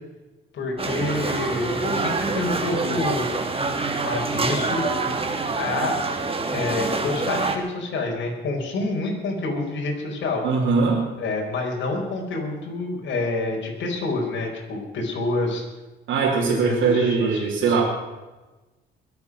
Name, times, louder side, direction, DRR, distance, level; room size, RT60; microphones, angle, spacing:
voice 1, 0.5-3.2 4.0-4.9 5.6-6.0 6.5-10.4 11.2-15.6 16.4-17.8, left 2 dB, 65° left, -1 dB, 4.7 m, -27 dB
sound 1, 0.8-7.6, right 3 dB, 30° right, 2.0 m, -26 dB
voice 2, 10.4-11.0 16.1-17.8, right 5 dB, 80° right, -4 dB, 3.2 m, -21 dB
22.5 x 8.4 x 6.2 m, 1.1 s
cardioid pair, 90°, 20 cm